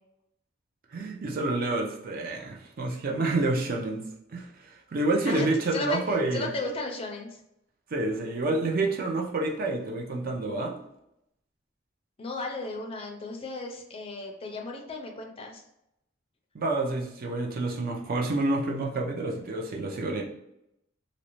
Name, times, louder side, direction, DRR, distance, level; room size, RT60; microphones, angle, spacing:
voice 1, 0.9-6.5 7.9-10.8 16.5-20.2, right 2 dB, 50° right, 1 dB, 0.5 m, -28 dB
voice 2, 5.3-6.0 6.3-7.4 12.2-15.6, left 3 dB, 30° left, 2 dB, 0.4 m, -35 dB
2.6 x 2.0 x 2.9 m, 0.81 s
head